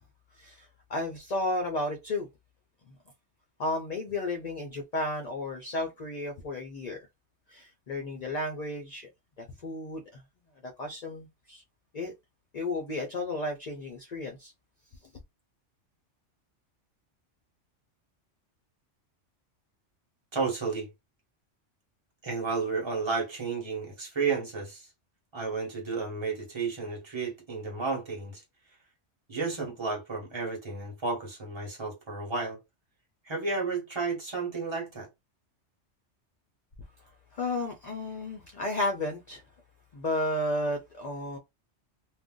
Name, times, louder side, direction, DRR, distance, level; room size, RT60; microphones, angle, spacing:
voice 1, 0.3-2.3 2.9-3.0 3.6-7.0 7.5-9.1 9.4-10.2 10.6-11.6 11.9-12.1 12.5-14.5 37.3-39.4 39.9-41.4, left 2 dB, 55° left, 0.4 m, -33 dB
voice 2, 20.3-20.9 22.2-24.9 25.3-28.4 29.3-32.6 33.2-35.1, right 4 dB, 25° right, 1.1 m, -32 dB
2.5 x 2.1 x 3.6 m
omnidirectional pair, 1.2 m